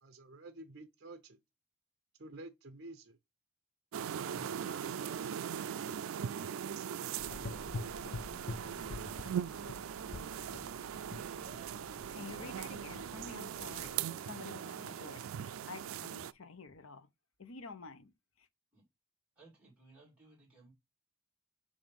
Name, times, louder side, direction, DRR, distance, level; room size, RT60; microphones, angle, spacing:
voice 1, 0.0-1.4 2.2-3.2 4.2-5.1 5.5-6.0 6.7-7.2, right 2 dB, 50° right, 0.7 m, -51 dB
sound 1, 3.9-16.3, right 8 dB, 80° right, 0.4 m, -40 dB
Gurgling / Engine, 7.2-13.9, left 3 dB, 45° left, 0.4 m, -47 dB
Animal, 11.1-15.3, right 3 dB, 35° right, 1.4 m, -60 dB
voice 2, 12.1-17.1 17.4-18.5, left 4 dB, 80° left, 0.9 m, -50 dB
voice 3, 19.4-20.7, right 3 dB, 5° right, 2.6 m, -60 dB
7.2 x 2.6 x 5.3 m
head